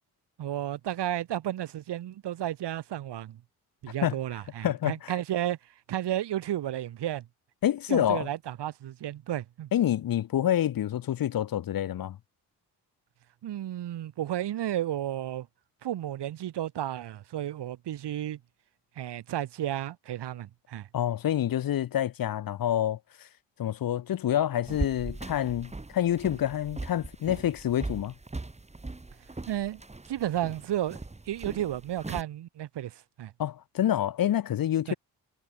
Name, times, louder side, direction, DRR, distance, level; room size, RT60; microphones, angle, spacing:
voice 1, 0.4-3.4 3.8-5.6 5.9-7.3 7.9-9.7 13.4-15.5 15.8-18.4 19.0-20.9 29.5-29.8 30.1-31.0 31.3-33.3 34.9-35.0, right 12 dB, 70° right, 2.3 m, -32 dB
voice 2, 4.6-5.1 7.6-8.3 9.7-12.2 20.9-23.0 23.6-28.1 33.4-34.9, left 11 dB, 55° left, 0.9 m, -27 dB
sound 1, 24.7-32.2, right 2 dB, 15° right, 1.8 m, -39 dB
supercardioid pair, 50°, 43 cm